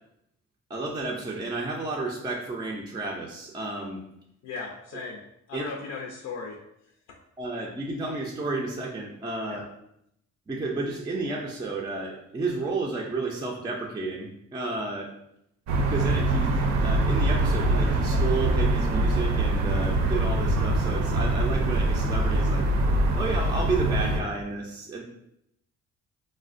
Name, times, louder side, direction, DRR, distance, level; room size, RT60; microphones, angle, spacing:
voice 1, 0.7-4.0 5.5-5.6 7.4-9.6 10.5-15.1 15.9-22.7 23.2-25.0, right 3 dB, 15° right, -1 dB, 0.3 m, -32 dB
voice 2, 4.4-5.2 5.5-6.6 7.1-7.2 9.5-9.7, left 4 dB, 85° left, 0 dB, 0.5 m, -37 dB
sound 1, 15.7-24.2, right 2 dB, 70° right, 0.5 m, -24 dB
4.0 x 2.1 x 2.5 m, 0.76 s
cardioid pair, 125°, 29 cm